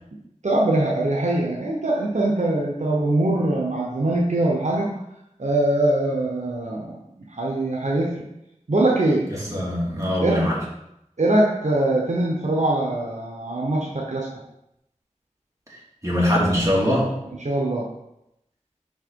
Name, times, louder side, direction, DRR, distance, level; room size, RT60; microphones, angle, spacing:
voice 1, 0.4-4.9 5.4-6.9 7.3-8.2 8.7-9.3 10.2-10.4 11.2-14.3 17.4-17.9, right 1 dB, 65° right, -2 dB, 1.0 m, -22 dB
voice 2, 9.3-10.6 16.0-17.1, equal, 25° right, -5 dB, 2.4 m, -22 dB
5.8 x 4.7 x 4.6 m, 0.83 s
wide cardioid pair, 50°, 13 cm